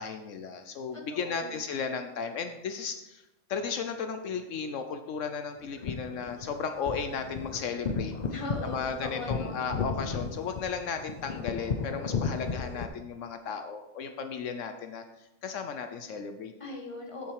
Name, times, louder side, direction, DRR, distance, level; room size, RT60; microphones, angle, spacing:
voice 1, 0.0-8.1 8.6-16.5, left 6 dB, 75° left, 7 dB, 1.0 m, -35 dB
voice 2, 0.9-1.6 8.3-9.6 16.6-17.3, left 2 dB, 25° left, 2 dB, 1.5 m, -39 dB
sound 1, 5.6-12.8, left 5 dB, 45° left, 0.6 m, -35 dB
8.7 x 8.4 x 4.7 m, 0.94 s
omnidirectional pair, 1.3 m